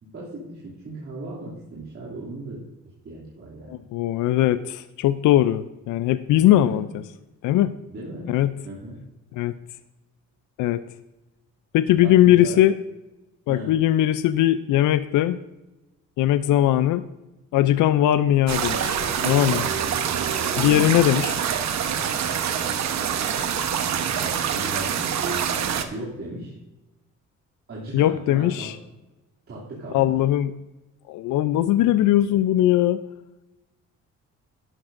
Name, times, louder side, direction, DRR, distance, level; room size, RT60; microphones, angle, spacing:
voice 1, 0.0-2.6 3.0-3.8 6.5-6.9 7.9-8.3 8.6-9.0 11.9-12.6 13.5-13.8 20.5-21.0 24.2-26.6 27.7-28.8 29.5-30.1, right 1 dB, 45° right, -7 dB, 2.7 m, -36 dB
voice 2, 3.7-6.9 7.4-7.7 8.3-8.5 9.3-9.5 10.6-10.8 11.7-12.7 13.5-15.4 16.2-17.0 17.5-19.0 19.2-19.7 20.6-21.4 27.9-28.8 29.9-30.5 31.1-33.0, left 13 dB, 80° left, 14 dB, 0.5 m, -20 dB
sound 1, 18.5-25.8, right 8 dB, 65° right, 1.0 m, -25 dB
12.0 x 10.5 x 2.6 m, 1.0 s
cardioid pair, 90°, 30 cm